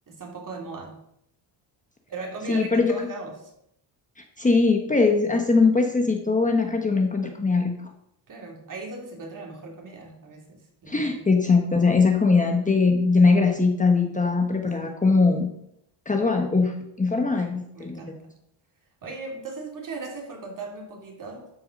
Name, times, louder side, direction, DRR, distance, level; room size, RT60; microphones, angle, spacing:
voice 1, 0.1-1.0 2.1-3.5 8.3-11.3 14.8-14.9 17.3-18.3 19.0-21.5, right 3 dB, 40° right, 1 dB, 3.1 m, -38 dB
voice 2, 2.5-3.1 4.4-7.7 10.9-15.5 16.1-18.1, left 4 dB, 15° left, 2 dB, 1.2 m, -21 dB
12.5 x 5.8 x 5.3 m, 0.76 s
cardioid pair, 120°, 48 cm